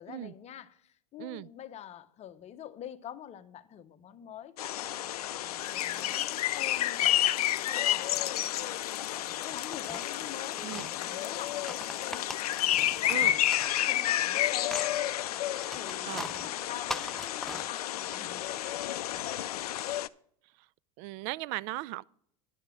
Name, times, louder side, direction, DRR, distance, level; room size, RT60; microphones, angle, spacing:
voice 1, 0.0-7.2 7.6-8.7 9.1-12.5 13.0-13.4 13.8-14.9 15.7-19.7, left 10 dB, 35° left, 0.8 m, -46 dB
voice 2, 1.2-1.5 10.6-10.9 13.1-13.4 16.0-16.3 21.0-22.0, right 19 dB, 55° right, 0.4 m, -37 dB
sound 1, 4.6-20.1, left 13 dB, 85° left, 0.4 m, -31 dB
sound 2, 5.6-13.2, left 14 dB, 60° left, 0.9 m, -48 dB
sound 3, 9.4-10.9 11.5-14.4 14.7-18.2, left 1 dB, ahead, 0.5 m, -41 dB
10.5 x 6.6 x 6.0 m
hypercardioid pair, 90°, 19 cm